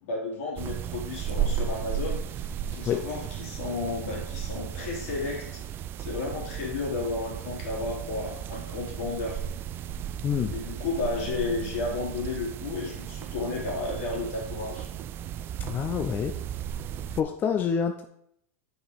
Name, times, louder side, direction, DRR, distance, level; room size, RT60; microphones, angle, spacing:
voice 1, 0.0-5.5 6.0-9.4 10.5-14.9, left 3 dB, 70° left, -2 dB, 3.2 m, -33 dB
sound 1, 0.6-17.2, right 9 dB, 30° right, 0.3 m, -35 dB
voice 2, 10.2-10.5 15.6-16.3 17.1-18.0, left 7 dB, 25° left, 6 dB, 0.5 m, -27 dB
6.1 x 5.1 x 5.0 m, 0.72 s
supercardioid pair, 135°, 8 cm